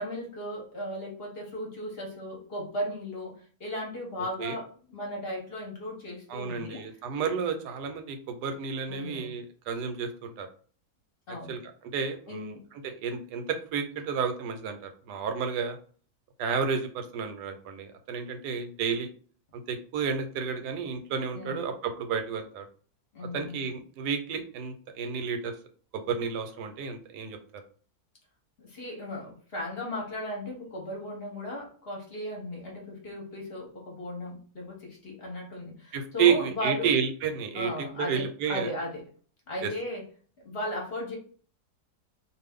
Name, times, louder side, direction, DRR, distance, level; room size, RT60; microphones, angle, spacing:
voice 1, 0.0-6.8 8.9-9.3 11.3-11.5 12.3-12.6 21.3-21.6 23.1-23.6 28.6-36.9 37.5-39.0 39.5-40.0 40.4-41.2, left 1 dB, 45° left, -1 dB, 0.9 m, -36 dB
voice 2, 6.3-10.5 11.3-11.6 11.9-15.8 16.4-19.1 19.5-22.6 23.2-25.5 25.9-27.4 35.9-38.7 39.6-39.7, right 6 dB, 85° right, 6 dB, 1.2 m, -31 dB
2.5 x 2.5 x 3.5 m, 0.43 s
omnidirectional pair, 1.7 m